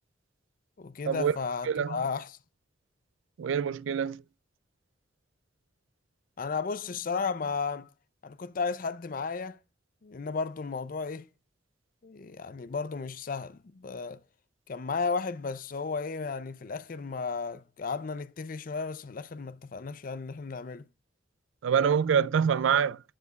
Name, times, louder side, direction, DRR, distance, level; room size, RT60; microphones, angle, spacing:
voice 1, 0.8-2.3 6.4-7.9 8.2-9.6 10.0-11.3 12.0-14.2 14.7-20.9, left 4 dB, 45° left, 0.5 m, -34 dB
voice 2, 1.6-2.0 3.4-4.2 21.6-23.0, right 7 dB, 90° right, 0.4 m, -25 dB
14.5 x 5.1 x 2.3 m
head